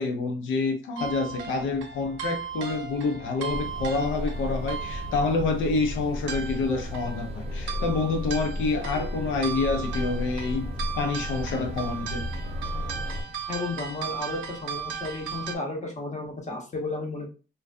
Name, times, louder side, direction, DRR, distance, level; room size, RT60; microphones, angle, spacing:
voice 1, 0.0-12.2, left 3 dB, 80° left, 0.7 m, -28 dB
sound 1, 1.0-15.6, right 6 dB, 80° right, 0.5 m, -37 dB
sound 2, 3.5-13.2, left 1 dB, 30° right, 0.6 m, -34 dB
voice 2, 13.5-17.3, left 2 dB, 35° left, 0.9 m, -33 dB
2.3 x 2.2 x 2.4 m
cardioid pair, 90°, 20 cm